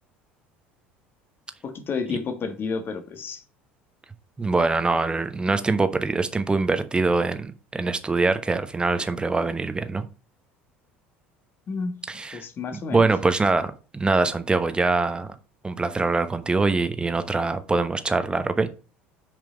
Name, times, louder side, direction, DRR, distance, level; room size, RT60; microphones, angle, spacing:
voice 1, 1.6-3.4 11.7-11.9 12.3-13.1, left 5 dB, 40° left, 1.6 m, -30 dB
voice 2, 4.4-10.0 12.1-12.4 12.9-15.3 15.6-18.7, right 3 dB, 15° right, 1.1 m, -23 dB
6.7 x 5.2 x 5.1 m
figure-of-eight pair, 65°, 6 cm